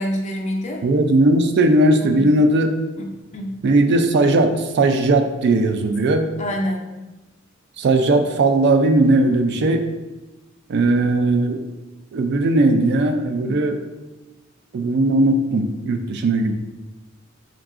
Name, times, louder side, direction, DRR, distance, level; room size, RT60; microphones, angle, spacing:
voice 1, 0.0-0.8 1.9-2.3 3.0-3.6 6.4-6.8, equal, 35° left, 1 dB, 0.5 m, -27 dB
voice 2, 0.8-2.7 3.6-6.3 7.8-9.8 10.7-11.6 12.1-13.8 14.7-16.5, right 2 dB, 55° right, 7 dB, 0.3 m, -18 dB
3.8 x 2.4 x 3.6 m, 1.1 s
head